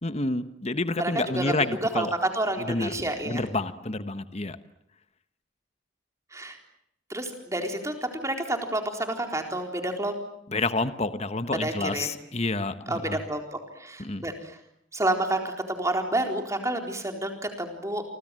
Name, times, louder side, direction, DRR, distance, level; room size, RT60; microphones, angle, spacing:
voice 1, 0.0-2.1 2.7-2.9 3.3-4.6 10.5-13.2 14.0-14.2, left 2 dB, 35° left, 11 dB, 1.3 m, -29 dB
voice 2, 1.0-1.5 1.8-3.5 6.3-6.6 7.1-10.1 11.5-12.1 12.9-13.4 13.8-14.6 14.9-18.0, right 1 dB, 15° right, 4 dB, 4.1 m, -29 dB
29.5 x 24.5 x 7.7 m, 0.73 s
head